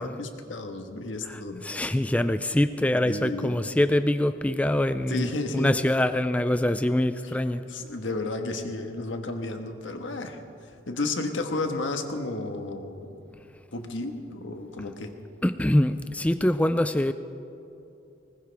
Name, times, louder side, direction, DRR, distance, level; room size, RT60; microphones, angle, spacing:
voice 1, 0.0-1.6 3.0-3.5 5.1-5.8 7.7-10.4 10.9-13.1 13.7-15.1, left 2 dB, 85° left, 5 dB, 1.4 m, -32 dB
voice 2, 1.3-7.6 15.4-17.1, left 1 dB, 5° left, 11 dB, 0.3 m, -24 dB
20.5 x 19.5 x 3.5 m, 2.7 s
head